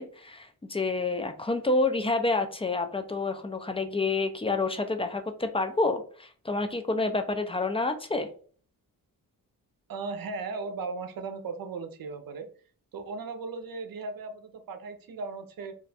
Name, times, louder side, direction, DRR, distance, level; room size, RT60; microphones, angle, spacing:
voice 1, 0.0-8.3, left 3 dB, 15° left, 6 dB, 0.3 m, -28 dB
voice 2, 9.9-12.5 12.9-15.7, right 4 dB, 65° right, 7 dB, 0.6 m, -37 dB
2.5 x 2.2 x 3.9 m, 0.43 s
wide cardioid pair, 110°, 37 cm